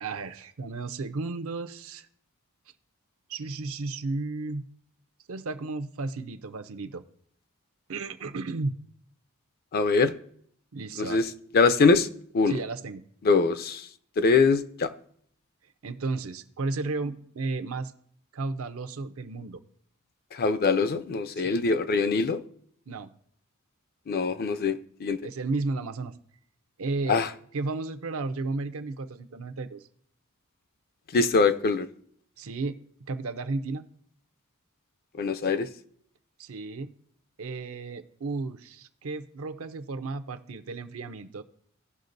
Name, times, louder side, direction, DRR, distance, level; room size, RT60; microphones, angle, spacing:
voice 1, 0.0-2.1 3.3-4.6 5.3-7.0 7.9-8.8 10.7-11.2 12.5-13.0 15.8-17.9 18.3-19.6 21.4-21.6 22.9-23.1 25.2-26.1 26.8-27.2 27.5-29.9 32.4-32.8 33.1-33.8 36.4-36.9 37.4-41.4, right 3 dB, 65° right, 0.6 m, -33 dB
voice 2, 9.7-10.1 11.0-11.3 11.5-12.1 12.3-12.6 13.2-13.9 14.2-14.9 20.3-22.4 24.1-25.2 27.1-27.3 31.1-31.9 35.2-35.7, left 4 dB, 45° left, 0.5 m, -23 dB
17.0 x 5.8 x 2.6 m
head